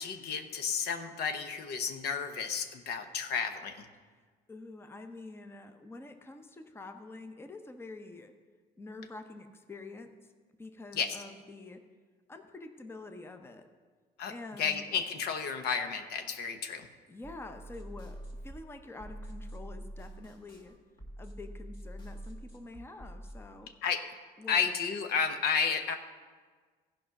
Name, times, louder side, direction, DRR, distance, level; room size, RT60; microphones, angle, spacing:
voice 1, 0.0-3.9 10.9-11.2 14.2-14.3 14.6-16.9 23.8-24.0 24.5-25.9, left 6 dB, 70° left, 7 dB, 0.9 m, -32 dB
voice 2, 4.5-8.3 8.8-10.1 10.6-11.8 12.3-13.6 14.3-15.0 17.1-18.2 18.4-20.7 21.2-23.7 24.4-24.6, left 2 dB, 15° left, 7 dB, 0.7 m, -47 dB
sound 1, 17.2-23.4, equal, 30° left, 2.1 m, -45 dB
14.5 x 5.2 x 5.8 m, 1.5 s
cardioid pair, 110°, 17 cm